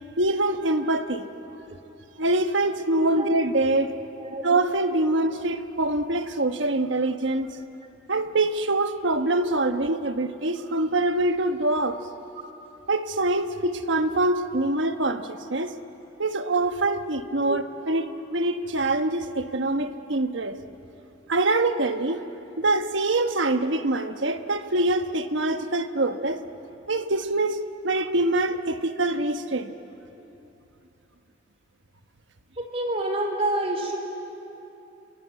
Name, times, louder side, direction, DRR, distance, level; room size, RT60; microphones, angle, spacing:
voice 1, 0.2-1.3 2.2-3.9 4.4-7.5 8.1-12.0 12.9-15.7 16.2-20.6 21.3-22.2 22.6-26.4 26.9-29.7, right 2 dB, 70° right, 8 dB, 1.2 m, -24 dB
voice 2, 32.6-34.0, right 1 dB, 30° right, 2 dB, 4.1 m, -28 dB
28.5 x 22.0 x 9.3 m, 2.9 s
head